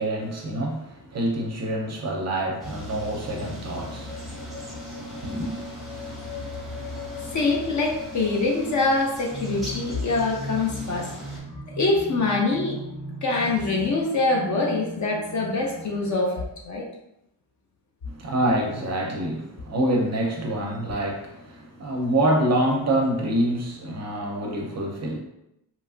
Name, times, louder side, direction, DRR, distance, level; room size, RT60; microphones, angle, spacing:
voice 1, 0.0-5.6 18.0-25.2, right 1 dB, 40° right, 0.5 m, -26 dB
sound 1, 2.6-11.4, left 1 dB, ahead, 0.7 m, -40 dB
sound 2, 3.8-16.1, left 1 dB, 20° left, 1.0 m, -38 dB
voice 2, 7.3-11.1 11.7-12.8 13.2-16.9, left 3 dB, 45° left, 0.5 m, -24 dB
2.9 x 2.4 x 2.4 m
wide cardioid pair, 125°, 43 cm